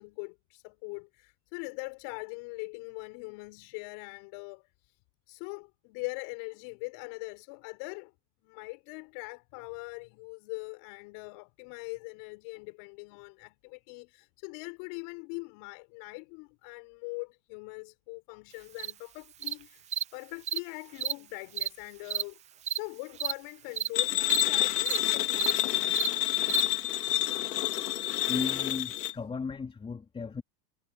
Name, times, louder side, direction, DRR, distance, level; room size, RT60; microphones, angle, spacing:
voice 1, 0.0-4.7 5.3-8.1 8.4-22.4 22.7-25.8, left 31 dB, 50° left, 5.9 m, -42 dB
Cricket, 18.8-18.9 19.4-19.5 19.9-20.0 20.5-20.6 21.0-21.1 21.6-21.7 22.1-22.2 22.7-22.8 23.1-23.3 23.8-23.9 24.2-24.4 24.8-25.0 25.3-25.5 25.9-26.1 26.5-26.6, right 11 dB, 15° right, 0.5 m, -31 dB
sound 1, 24.0-29.1, left 16 dB, 75° left, 3.6 m, -28 dB
voice 2, 28.2-30.4, left 5 dB, 10° left, 3.0 m, -35 dB
supercardioid pair, 140°, 47 cm